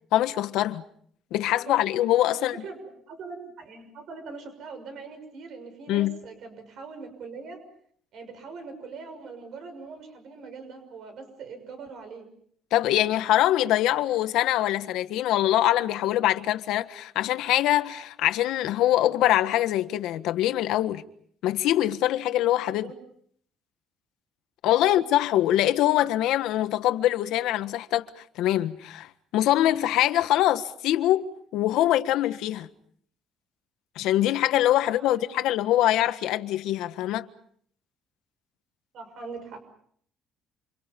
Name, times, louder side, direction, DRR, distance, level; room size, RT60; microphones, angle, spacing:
voice 1, 0.1-0.8 1.3-2.6 5.9-6.2 12.7-21.0 21.4-22.9 24.6-31.3 31.5-32.7 33.9-37.3, left 13 dB, 75° left, 1.5 m, -23 dB
voice 2, 2.3-7.6 8.1-12.3 22.7-23.0 24.7-24.9 34.8-35.2 38.9-39.6, right 4 dB, 50° right, 6.3 m, -42 dB
28.5 x 28.5 x 5.4 m
cardioid pair, 180°, 0 cm